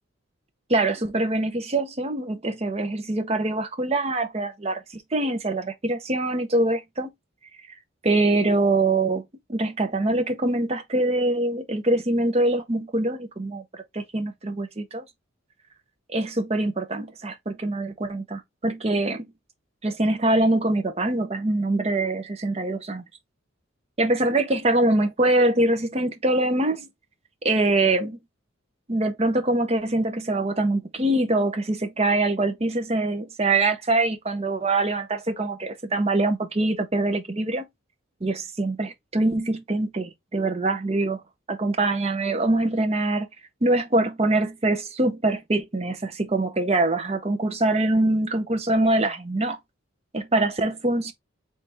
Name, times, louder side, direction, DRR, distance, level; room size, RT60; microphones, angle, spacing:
voice 1, 0.7-7.1 8.0-9.2 9.5-15.0 16.1-19.3 19.8-23.0 24.0-26.9 27.4-28.2 28.9-37.7 38.2-41.2 41.5-43.3 43.6-49.6 50.1-51.1, right 2 dB, 30° right, 0.7 m, -24 dB
4.1 x 3.3 x 3.3 m
head